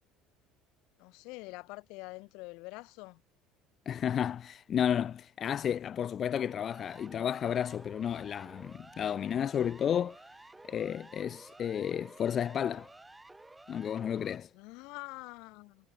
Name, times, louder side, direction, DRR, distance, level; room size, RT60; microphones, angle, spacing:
voice 1, 1.0-3.2 14.5-15.9, left 26 dB, 70° left, 1.5 m, -45 dB
voice 2, 3.9-10.2 10.7-12.9 13.7-14.5, left 9 dB, 35° left, 0.6 m, -32 dB
Siren, 6.4-14.4, right 2 dB, 10° right, 1.3 m, -53 dB
cardioid pair, 145°, 0 cm